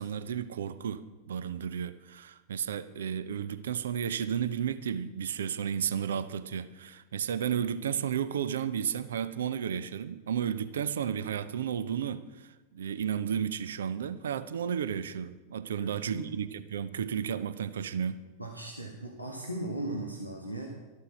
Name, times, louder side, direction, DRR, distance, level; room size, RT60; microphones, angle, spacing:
voice 1, 0.0-18.2, right 8 dB, 65° right, 0.7 m, -33 dB
voice 2, 15.7-16.3 18.4-20.7, right 1 dB, 90° right, 1.6 m, -37 dB
13.5 x 11.5 x 6.1 m
figure-of-eight pair, 90°, 0 cm